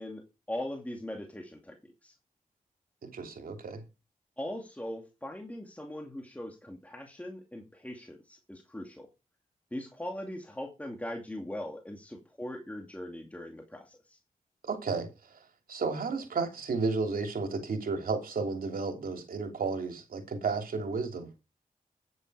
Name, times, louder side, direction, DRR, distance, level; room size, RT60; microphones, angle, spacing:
voice 1, 0.0-2.1 4.4-9.1 9.7-14.2, left 1 dB, 10° left, 2.5 m, -40 dB
voice 2, 3.0-3.8 14.6-15.1 15.7-21.3, right 4 dB, 80° right, 3.1 m, -32 dB
9.8 x 9.5 x 4.8 m
cardioid pair, 80°, 15 cm